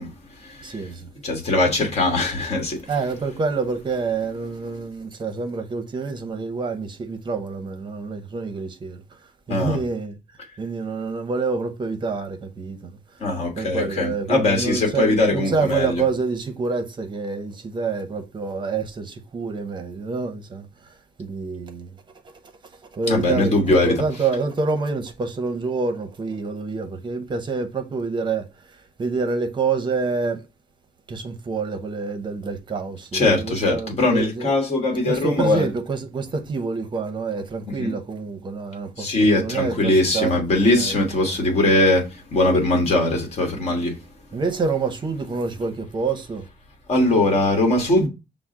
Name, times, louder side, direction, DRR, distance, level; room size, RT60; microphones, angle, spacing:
voice 1, 0.0-0.8 1.2-2.8 9.5-9.8 13.2-16.0 23.1-24.0 33.1-35.7 37.7-37.9 39.0-44.0 46.9-48.1, left 2 dB, 40° left, 1.4 m, -21 dB
voice 2, 0.6-1.1 2.9-9.0 9.5-10.2 10.6-13.0 13.6-22.0 22.2-22.3 22.9-30.4 31.1-34.5 35.1-40.3 40.6-41.3 44.3-46.4, right 4 dB, 30° right, 0.7 m, -27 dB
5.9 x 2.0 x 3.7 m
cardioid pair, 160°, 16 cm